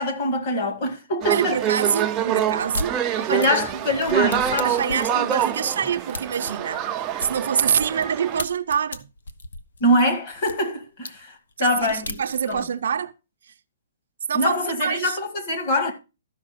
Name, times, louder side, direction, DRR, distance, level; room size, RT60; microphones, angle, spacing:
voice 1, 0.0-1.6 3.3-5.1 9.8-12.1 12.5-12.6 14.3-15.9, left 1 dB, 30° left, 1.8 m, -24 dB
sound 1, 1.2-8.4, right 10 dB, 15° right, 0.5 m, -26 dB
voice 2, 1.3-3.5 4.6-6.9 7.2-9.1 11.6-13.1 14.3-15.2, right 7 dB, 60° right, 0.6 m, -25 dB
sound 2, 2.7-2.9 3.4-8.1 8.4-10.6 11.0-11.1 11.5-12.7, left 3 dB, 80° left, 1.0 m, -35 dB
13.0 x 5.8 x 4.1 m
hypercardioid pair, 180°, 0 cm